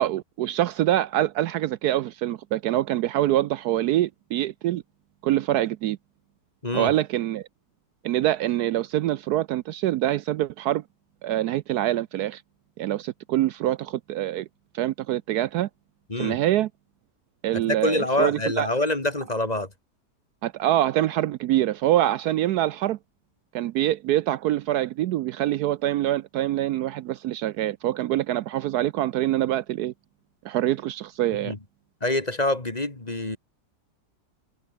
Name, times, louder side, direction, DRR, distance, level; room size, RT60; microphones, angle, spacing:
voice 1, 0.0-4.8 5.2-6.0 6.7-7.4 8.0-10.8 11.2-12.4 12.8-14.5 14.7-15.7 16.2-16.7 17.4-18.7 20.4-23.0 23.5-29.9 30.4-31.5, right 13 dB, 75° right, 1.1 m, -25 dB
voice 2, 17.7-19.7 31.5-31.6 32.0-33.4, left 2 dB, 25° left, 2.5 m, -25 dB
omnidirectional pair, 1.8 m